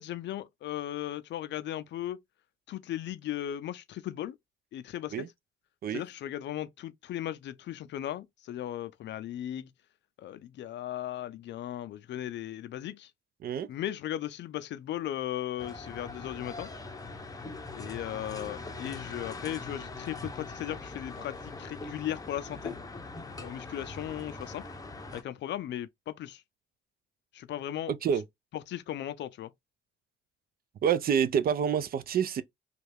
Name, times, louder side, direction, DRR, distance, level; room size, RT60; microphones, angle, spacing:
voice 1, 0.0-2.2 2.7-4.4 4.7-5.3 5.9-9.7 10.2-13.1 13.7-16.7 17.7-22.8 23.4-24.6 25.1-26.4 27.3-27.9 28.7-29.5, left 12 dB, 65° left, 0.4 m, -37 dB
sound 1, 15.6-25.2, left 3 dB, 20° left, 0.6 m, -42 dB
voice 2, 27.9-28.2 30.8-32.4, right 8 dB, 50° right, 0.4 m, -27 dB
3.1 x 2.3 x 3.3 m
cardioid pair, 90°, 20 cm